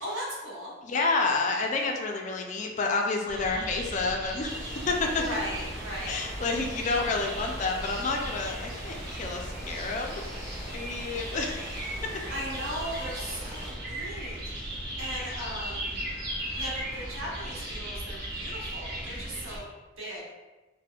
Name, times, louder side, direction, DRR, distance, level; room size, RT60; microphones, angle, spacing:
voice 1, 0.0-0.7 5.1-6.2 12.3-16.0 16.5-19.6 20.0-20.2, equal, 85° right, -6 dB, 1.2 m, -37 dB
voice 2, 0.8-5.3 6.0-10.2 10.7-11.6, left 3 dB, 35° left, 2 dB, 0.3 m, -29 dB
sound 1, 3.3-19.6, right 1 dB, 50° right, 0.7 m, -37 dB
Water, 4.5-13.7, equal, 15° right, 0.9 m, -43 dB
4.2 x 2.1 x 2.3 m, 1.1 s
head